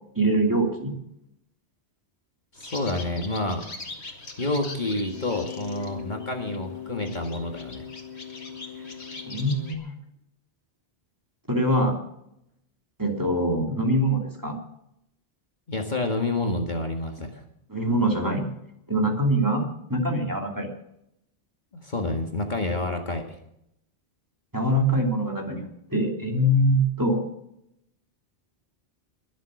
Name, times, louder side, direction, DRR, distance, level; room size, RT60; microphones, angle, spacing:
voice 1, 0.1-0.9 9.3-9.9 11.5-12.0 13.0-14.6 17.7-18.4 18.9-19.6 19.9-20.7 24.5-27.2, right 1 dB, 15° right, 1 dB, 2.8 m, -23 dB
sound 1, 2.5-9.7, left 6 dB, 70° left, 2.5 m, -39 dB
voice 2, 2.6-3.6 4.4-7.9 15.7-17.4 21.7-23.2, left 2 dB, 40° left, 3 dB, 1.9 m, -28 dB
22.5 x 7.6 x 6.4 m, 0.78 s
omnidirectional pair, 1.1 m